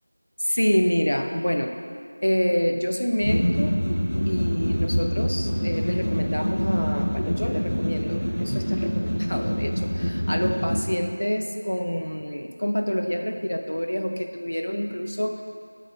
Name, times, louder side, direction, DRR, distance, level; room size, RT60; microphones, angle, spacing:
voice 1, 0.4-1.8 2.2-3.7 4.3-15.4, equal, 50° left, 5 dB, 0.5 m, -27 dB
sound 1, 3.2-10.8, equal, 25° left, 1.4 m, -25 dB
6.9 x 5.1 x 5.1 m, 2.2 s
figure-of-eight pair, 180°, 0 cm